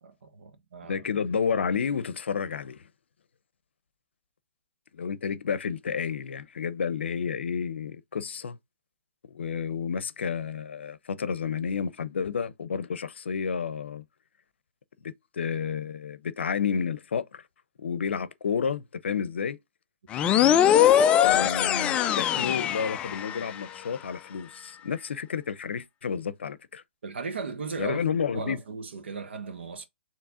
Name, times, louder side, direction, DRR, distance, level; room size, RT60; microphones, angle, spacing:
voice 1, 0.0-1.1 27.0-29.9, right 5 dB, 70° right, 1.2 m, -37 dB
voice 2, 0.9-2.8 4.9-8.6 9.3-14.0 15.0-17.4 17.8-19.6 21.2-26.8 27.8-28.6, left 6 dB, 75° left, 0.6 m, -31 dB
sound 1, 20.1-23.6, left 10 dB, 15° left, 0.3 m, -22 dB
7.0 x 3.0 x 2.4 m
hypercardioid pair, 140°, 6 cm